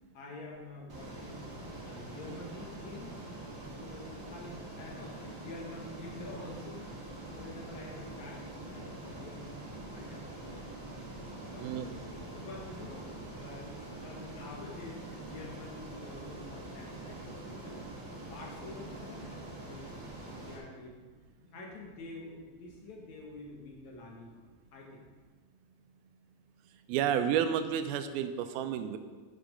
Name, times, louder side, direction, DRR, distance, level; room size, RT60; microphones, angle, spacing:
voice 1, 0.1-3.2 3.8-10.7 11.5-17.8 18.2-21.0 21.4-24.4 24.7-25.0, left 2 dB, 60° left, -1 dB, 2.3 m, -48 dB
Ocean, 0.9-20.6, right 2 dB, 30° right, 2.3 m, -44 dB
voice 2, 11.5-11.9 26.9-29.0, right 9 dB, 80° right, 9 dB, 2.4 m, -31 dB
9.9 x 8.1 x 5.1 m, 1.4 s
omnidirectional pair, 4.5 m